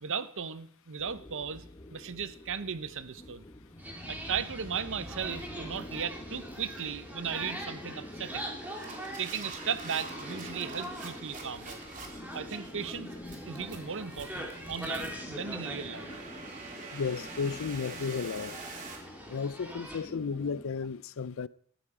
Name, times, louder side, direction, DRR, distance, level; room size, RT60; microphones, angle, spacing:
voice 1, 0.0-1.6 1.9-3.4 4.1-8.6 9.2-11.8 12.3-13.1 13.5-16.1, right 7 dB, 60° right, 0.9 m, -36 dB
sound 1, 1.0-20.6, left 1 dB, 20° left, 1.0 m, -46 dB
sound 2, 3.8-20.0, equal, 10° right, 3.8 m, -44 dB
sound 3, 5.2-5.4 5.8-6.0 6.5-6.8 7.4-7.6 8.2-19.0, right 3 dB, 35° right, 3.2 m, -46 dB
voice 2, 16.9-18.6 19.3-21.5, left 5 dB, 65° left, 0.5 m, -33 dB
18.0 x 13.5 x 5.0 m
head